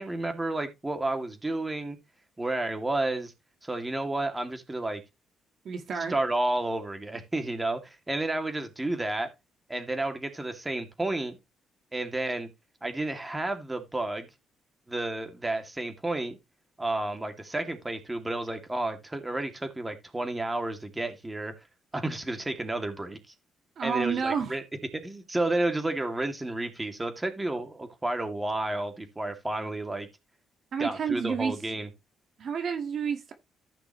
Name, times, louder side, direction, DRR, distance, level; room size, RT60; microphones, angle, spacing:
voice 1, 0.0-2.0 2.4-3.3 3.6-5.0 6.1-9.3 9.7-11.4 11.9-12.5 12.8-14.3 14.9-16.4 16.8-21.5 21.9-23.2 23.8-24.6 25.0-30.1 30.8-31.9, right 2 dB, 15° right, 2.4 m, -31 dB
voice 2, 5.6-6.1 23.8-24.5 30.7-31.6 32.4-33.3, right 6 dB, 60° right, 1.7 m, -30 dB
14.5 x 6.0 x 3.1 m
cardioid pair, 90°, 0 cm